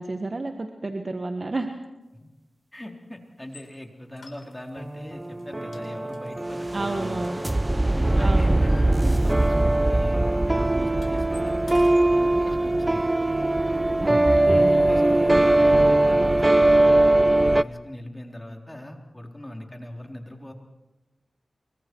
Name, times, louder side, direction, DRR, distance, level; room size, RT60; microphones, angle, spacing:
voice 1, 0.0-1.7 6.7-7.4 8.2-8.6 14.0-15.4, right 2 dB, 50° right, 5 dB, 1.6 m, -31 dB
voice 2, 2.7-7.3 7.9-10.2 10.6-13.1 14.7-17.1 17.4-20.5, left 1 dB, 15° left, 2 dB, 3.9 m, -41 dB
sound 1, 3.4-3.7 4.2-4.9 5.2-5.4 5.7-7.8 8.1-9.6 9.8-10.0 10.3-12.1, left 3 dB, 80° left, 3.7 m, -51 dB
sound 2, 4.8-17.6, right 2 dB, 25° right, 0.6 m, -21 dB
29.0 x 24.5 x 4.7 m, 1.1 s
cardioid pair, 40°, 0 cm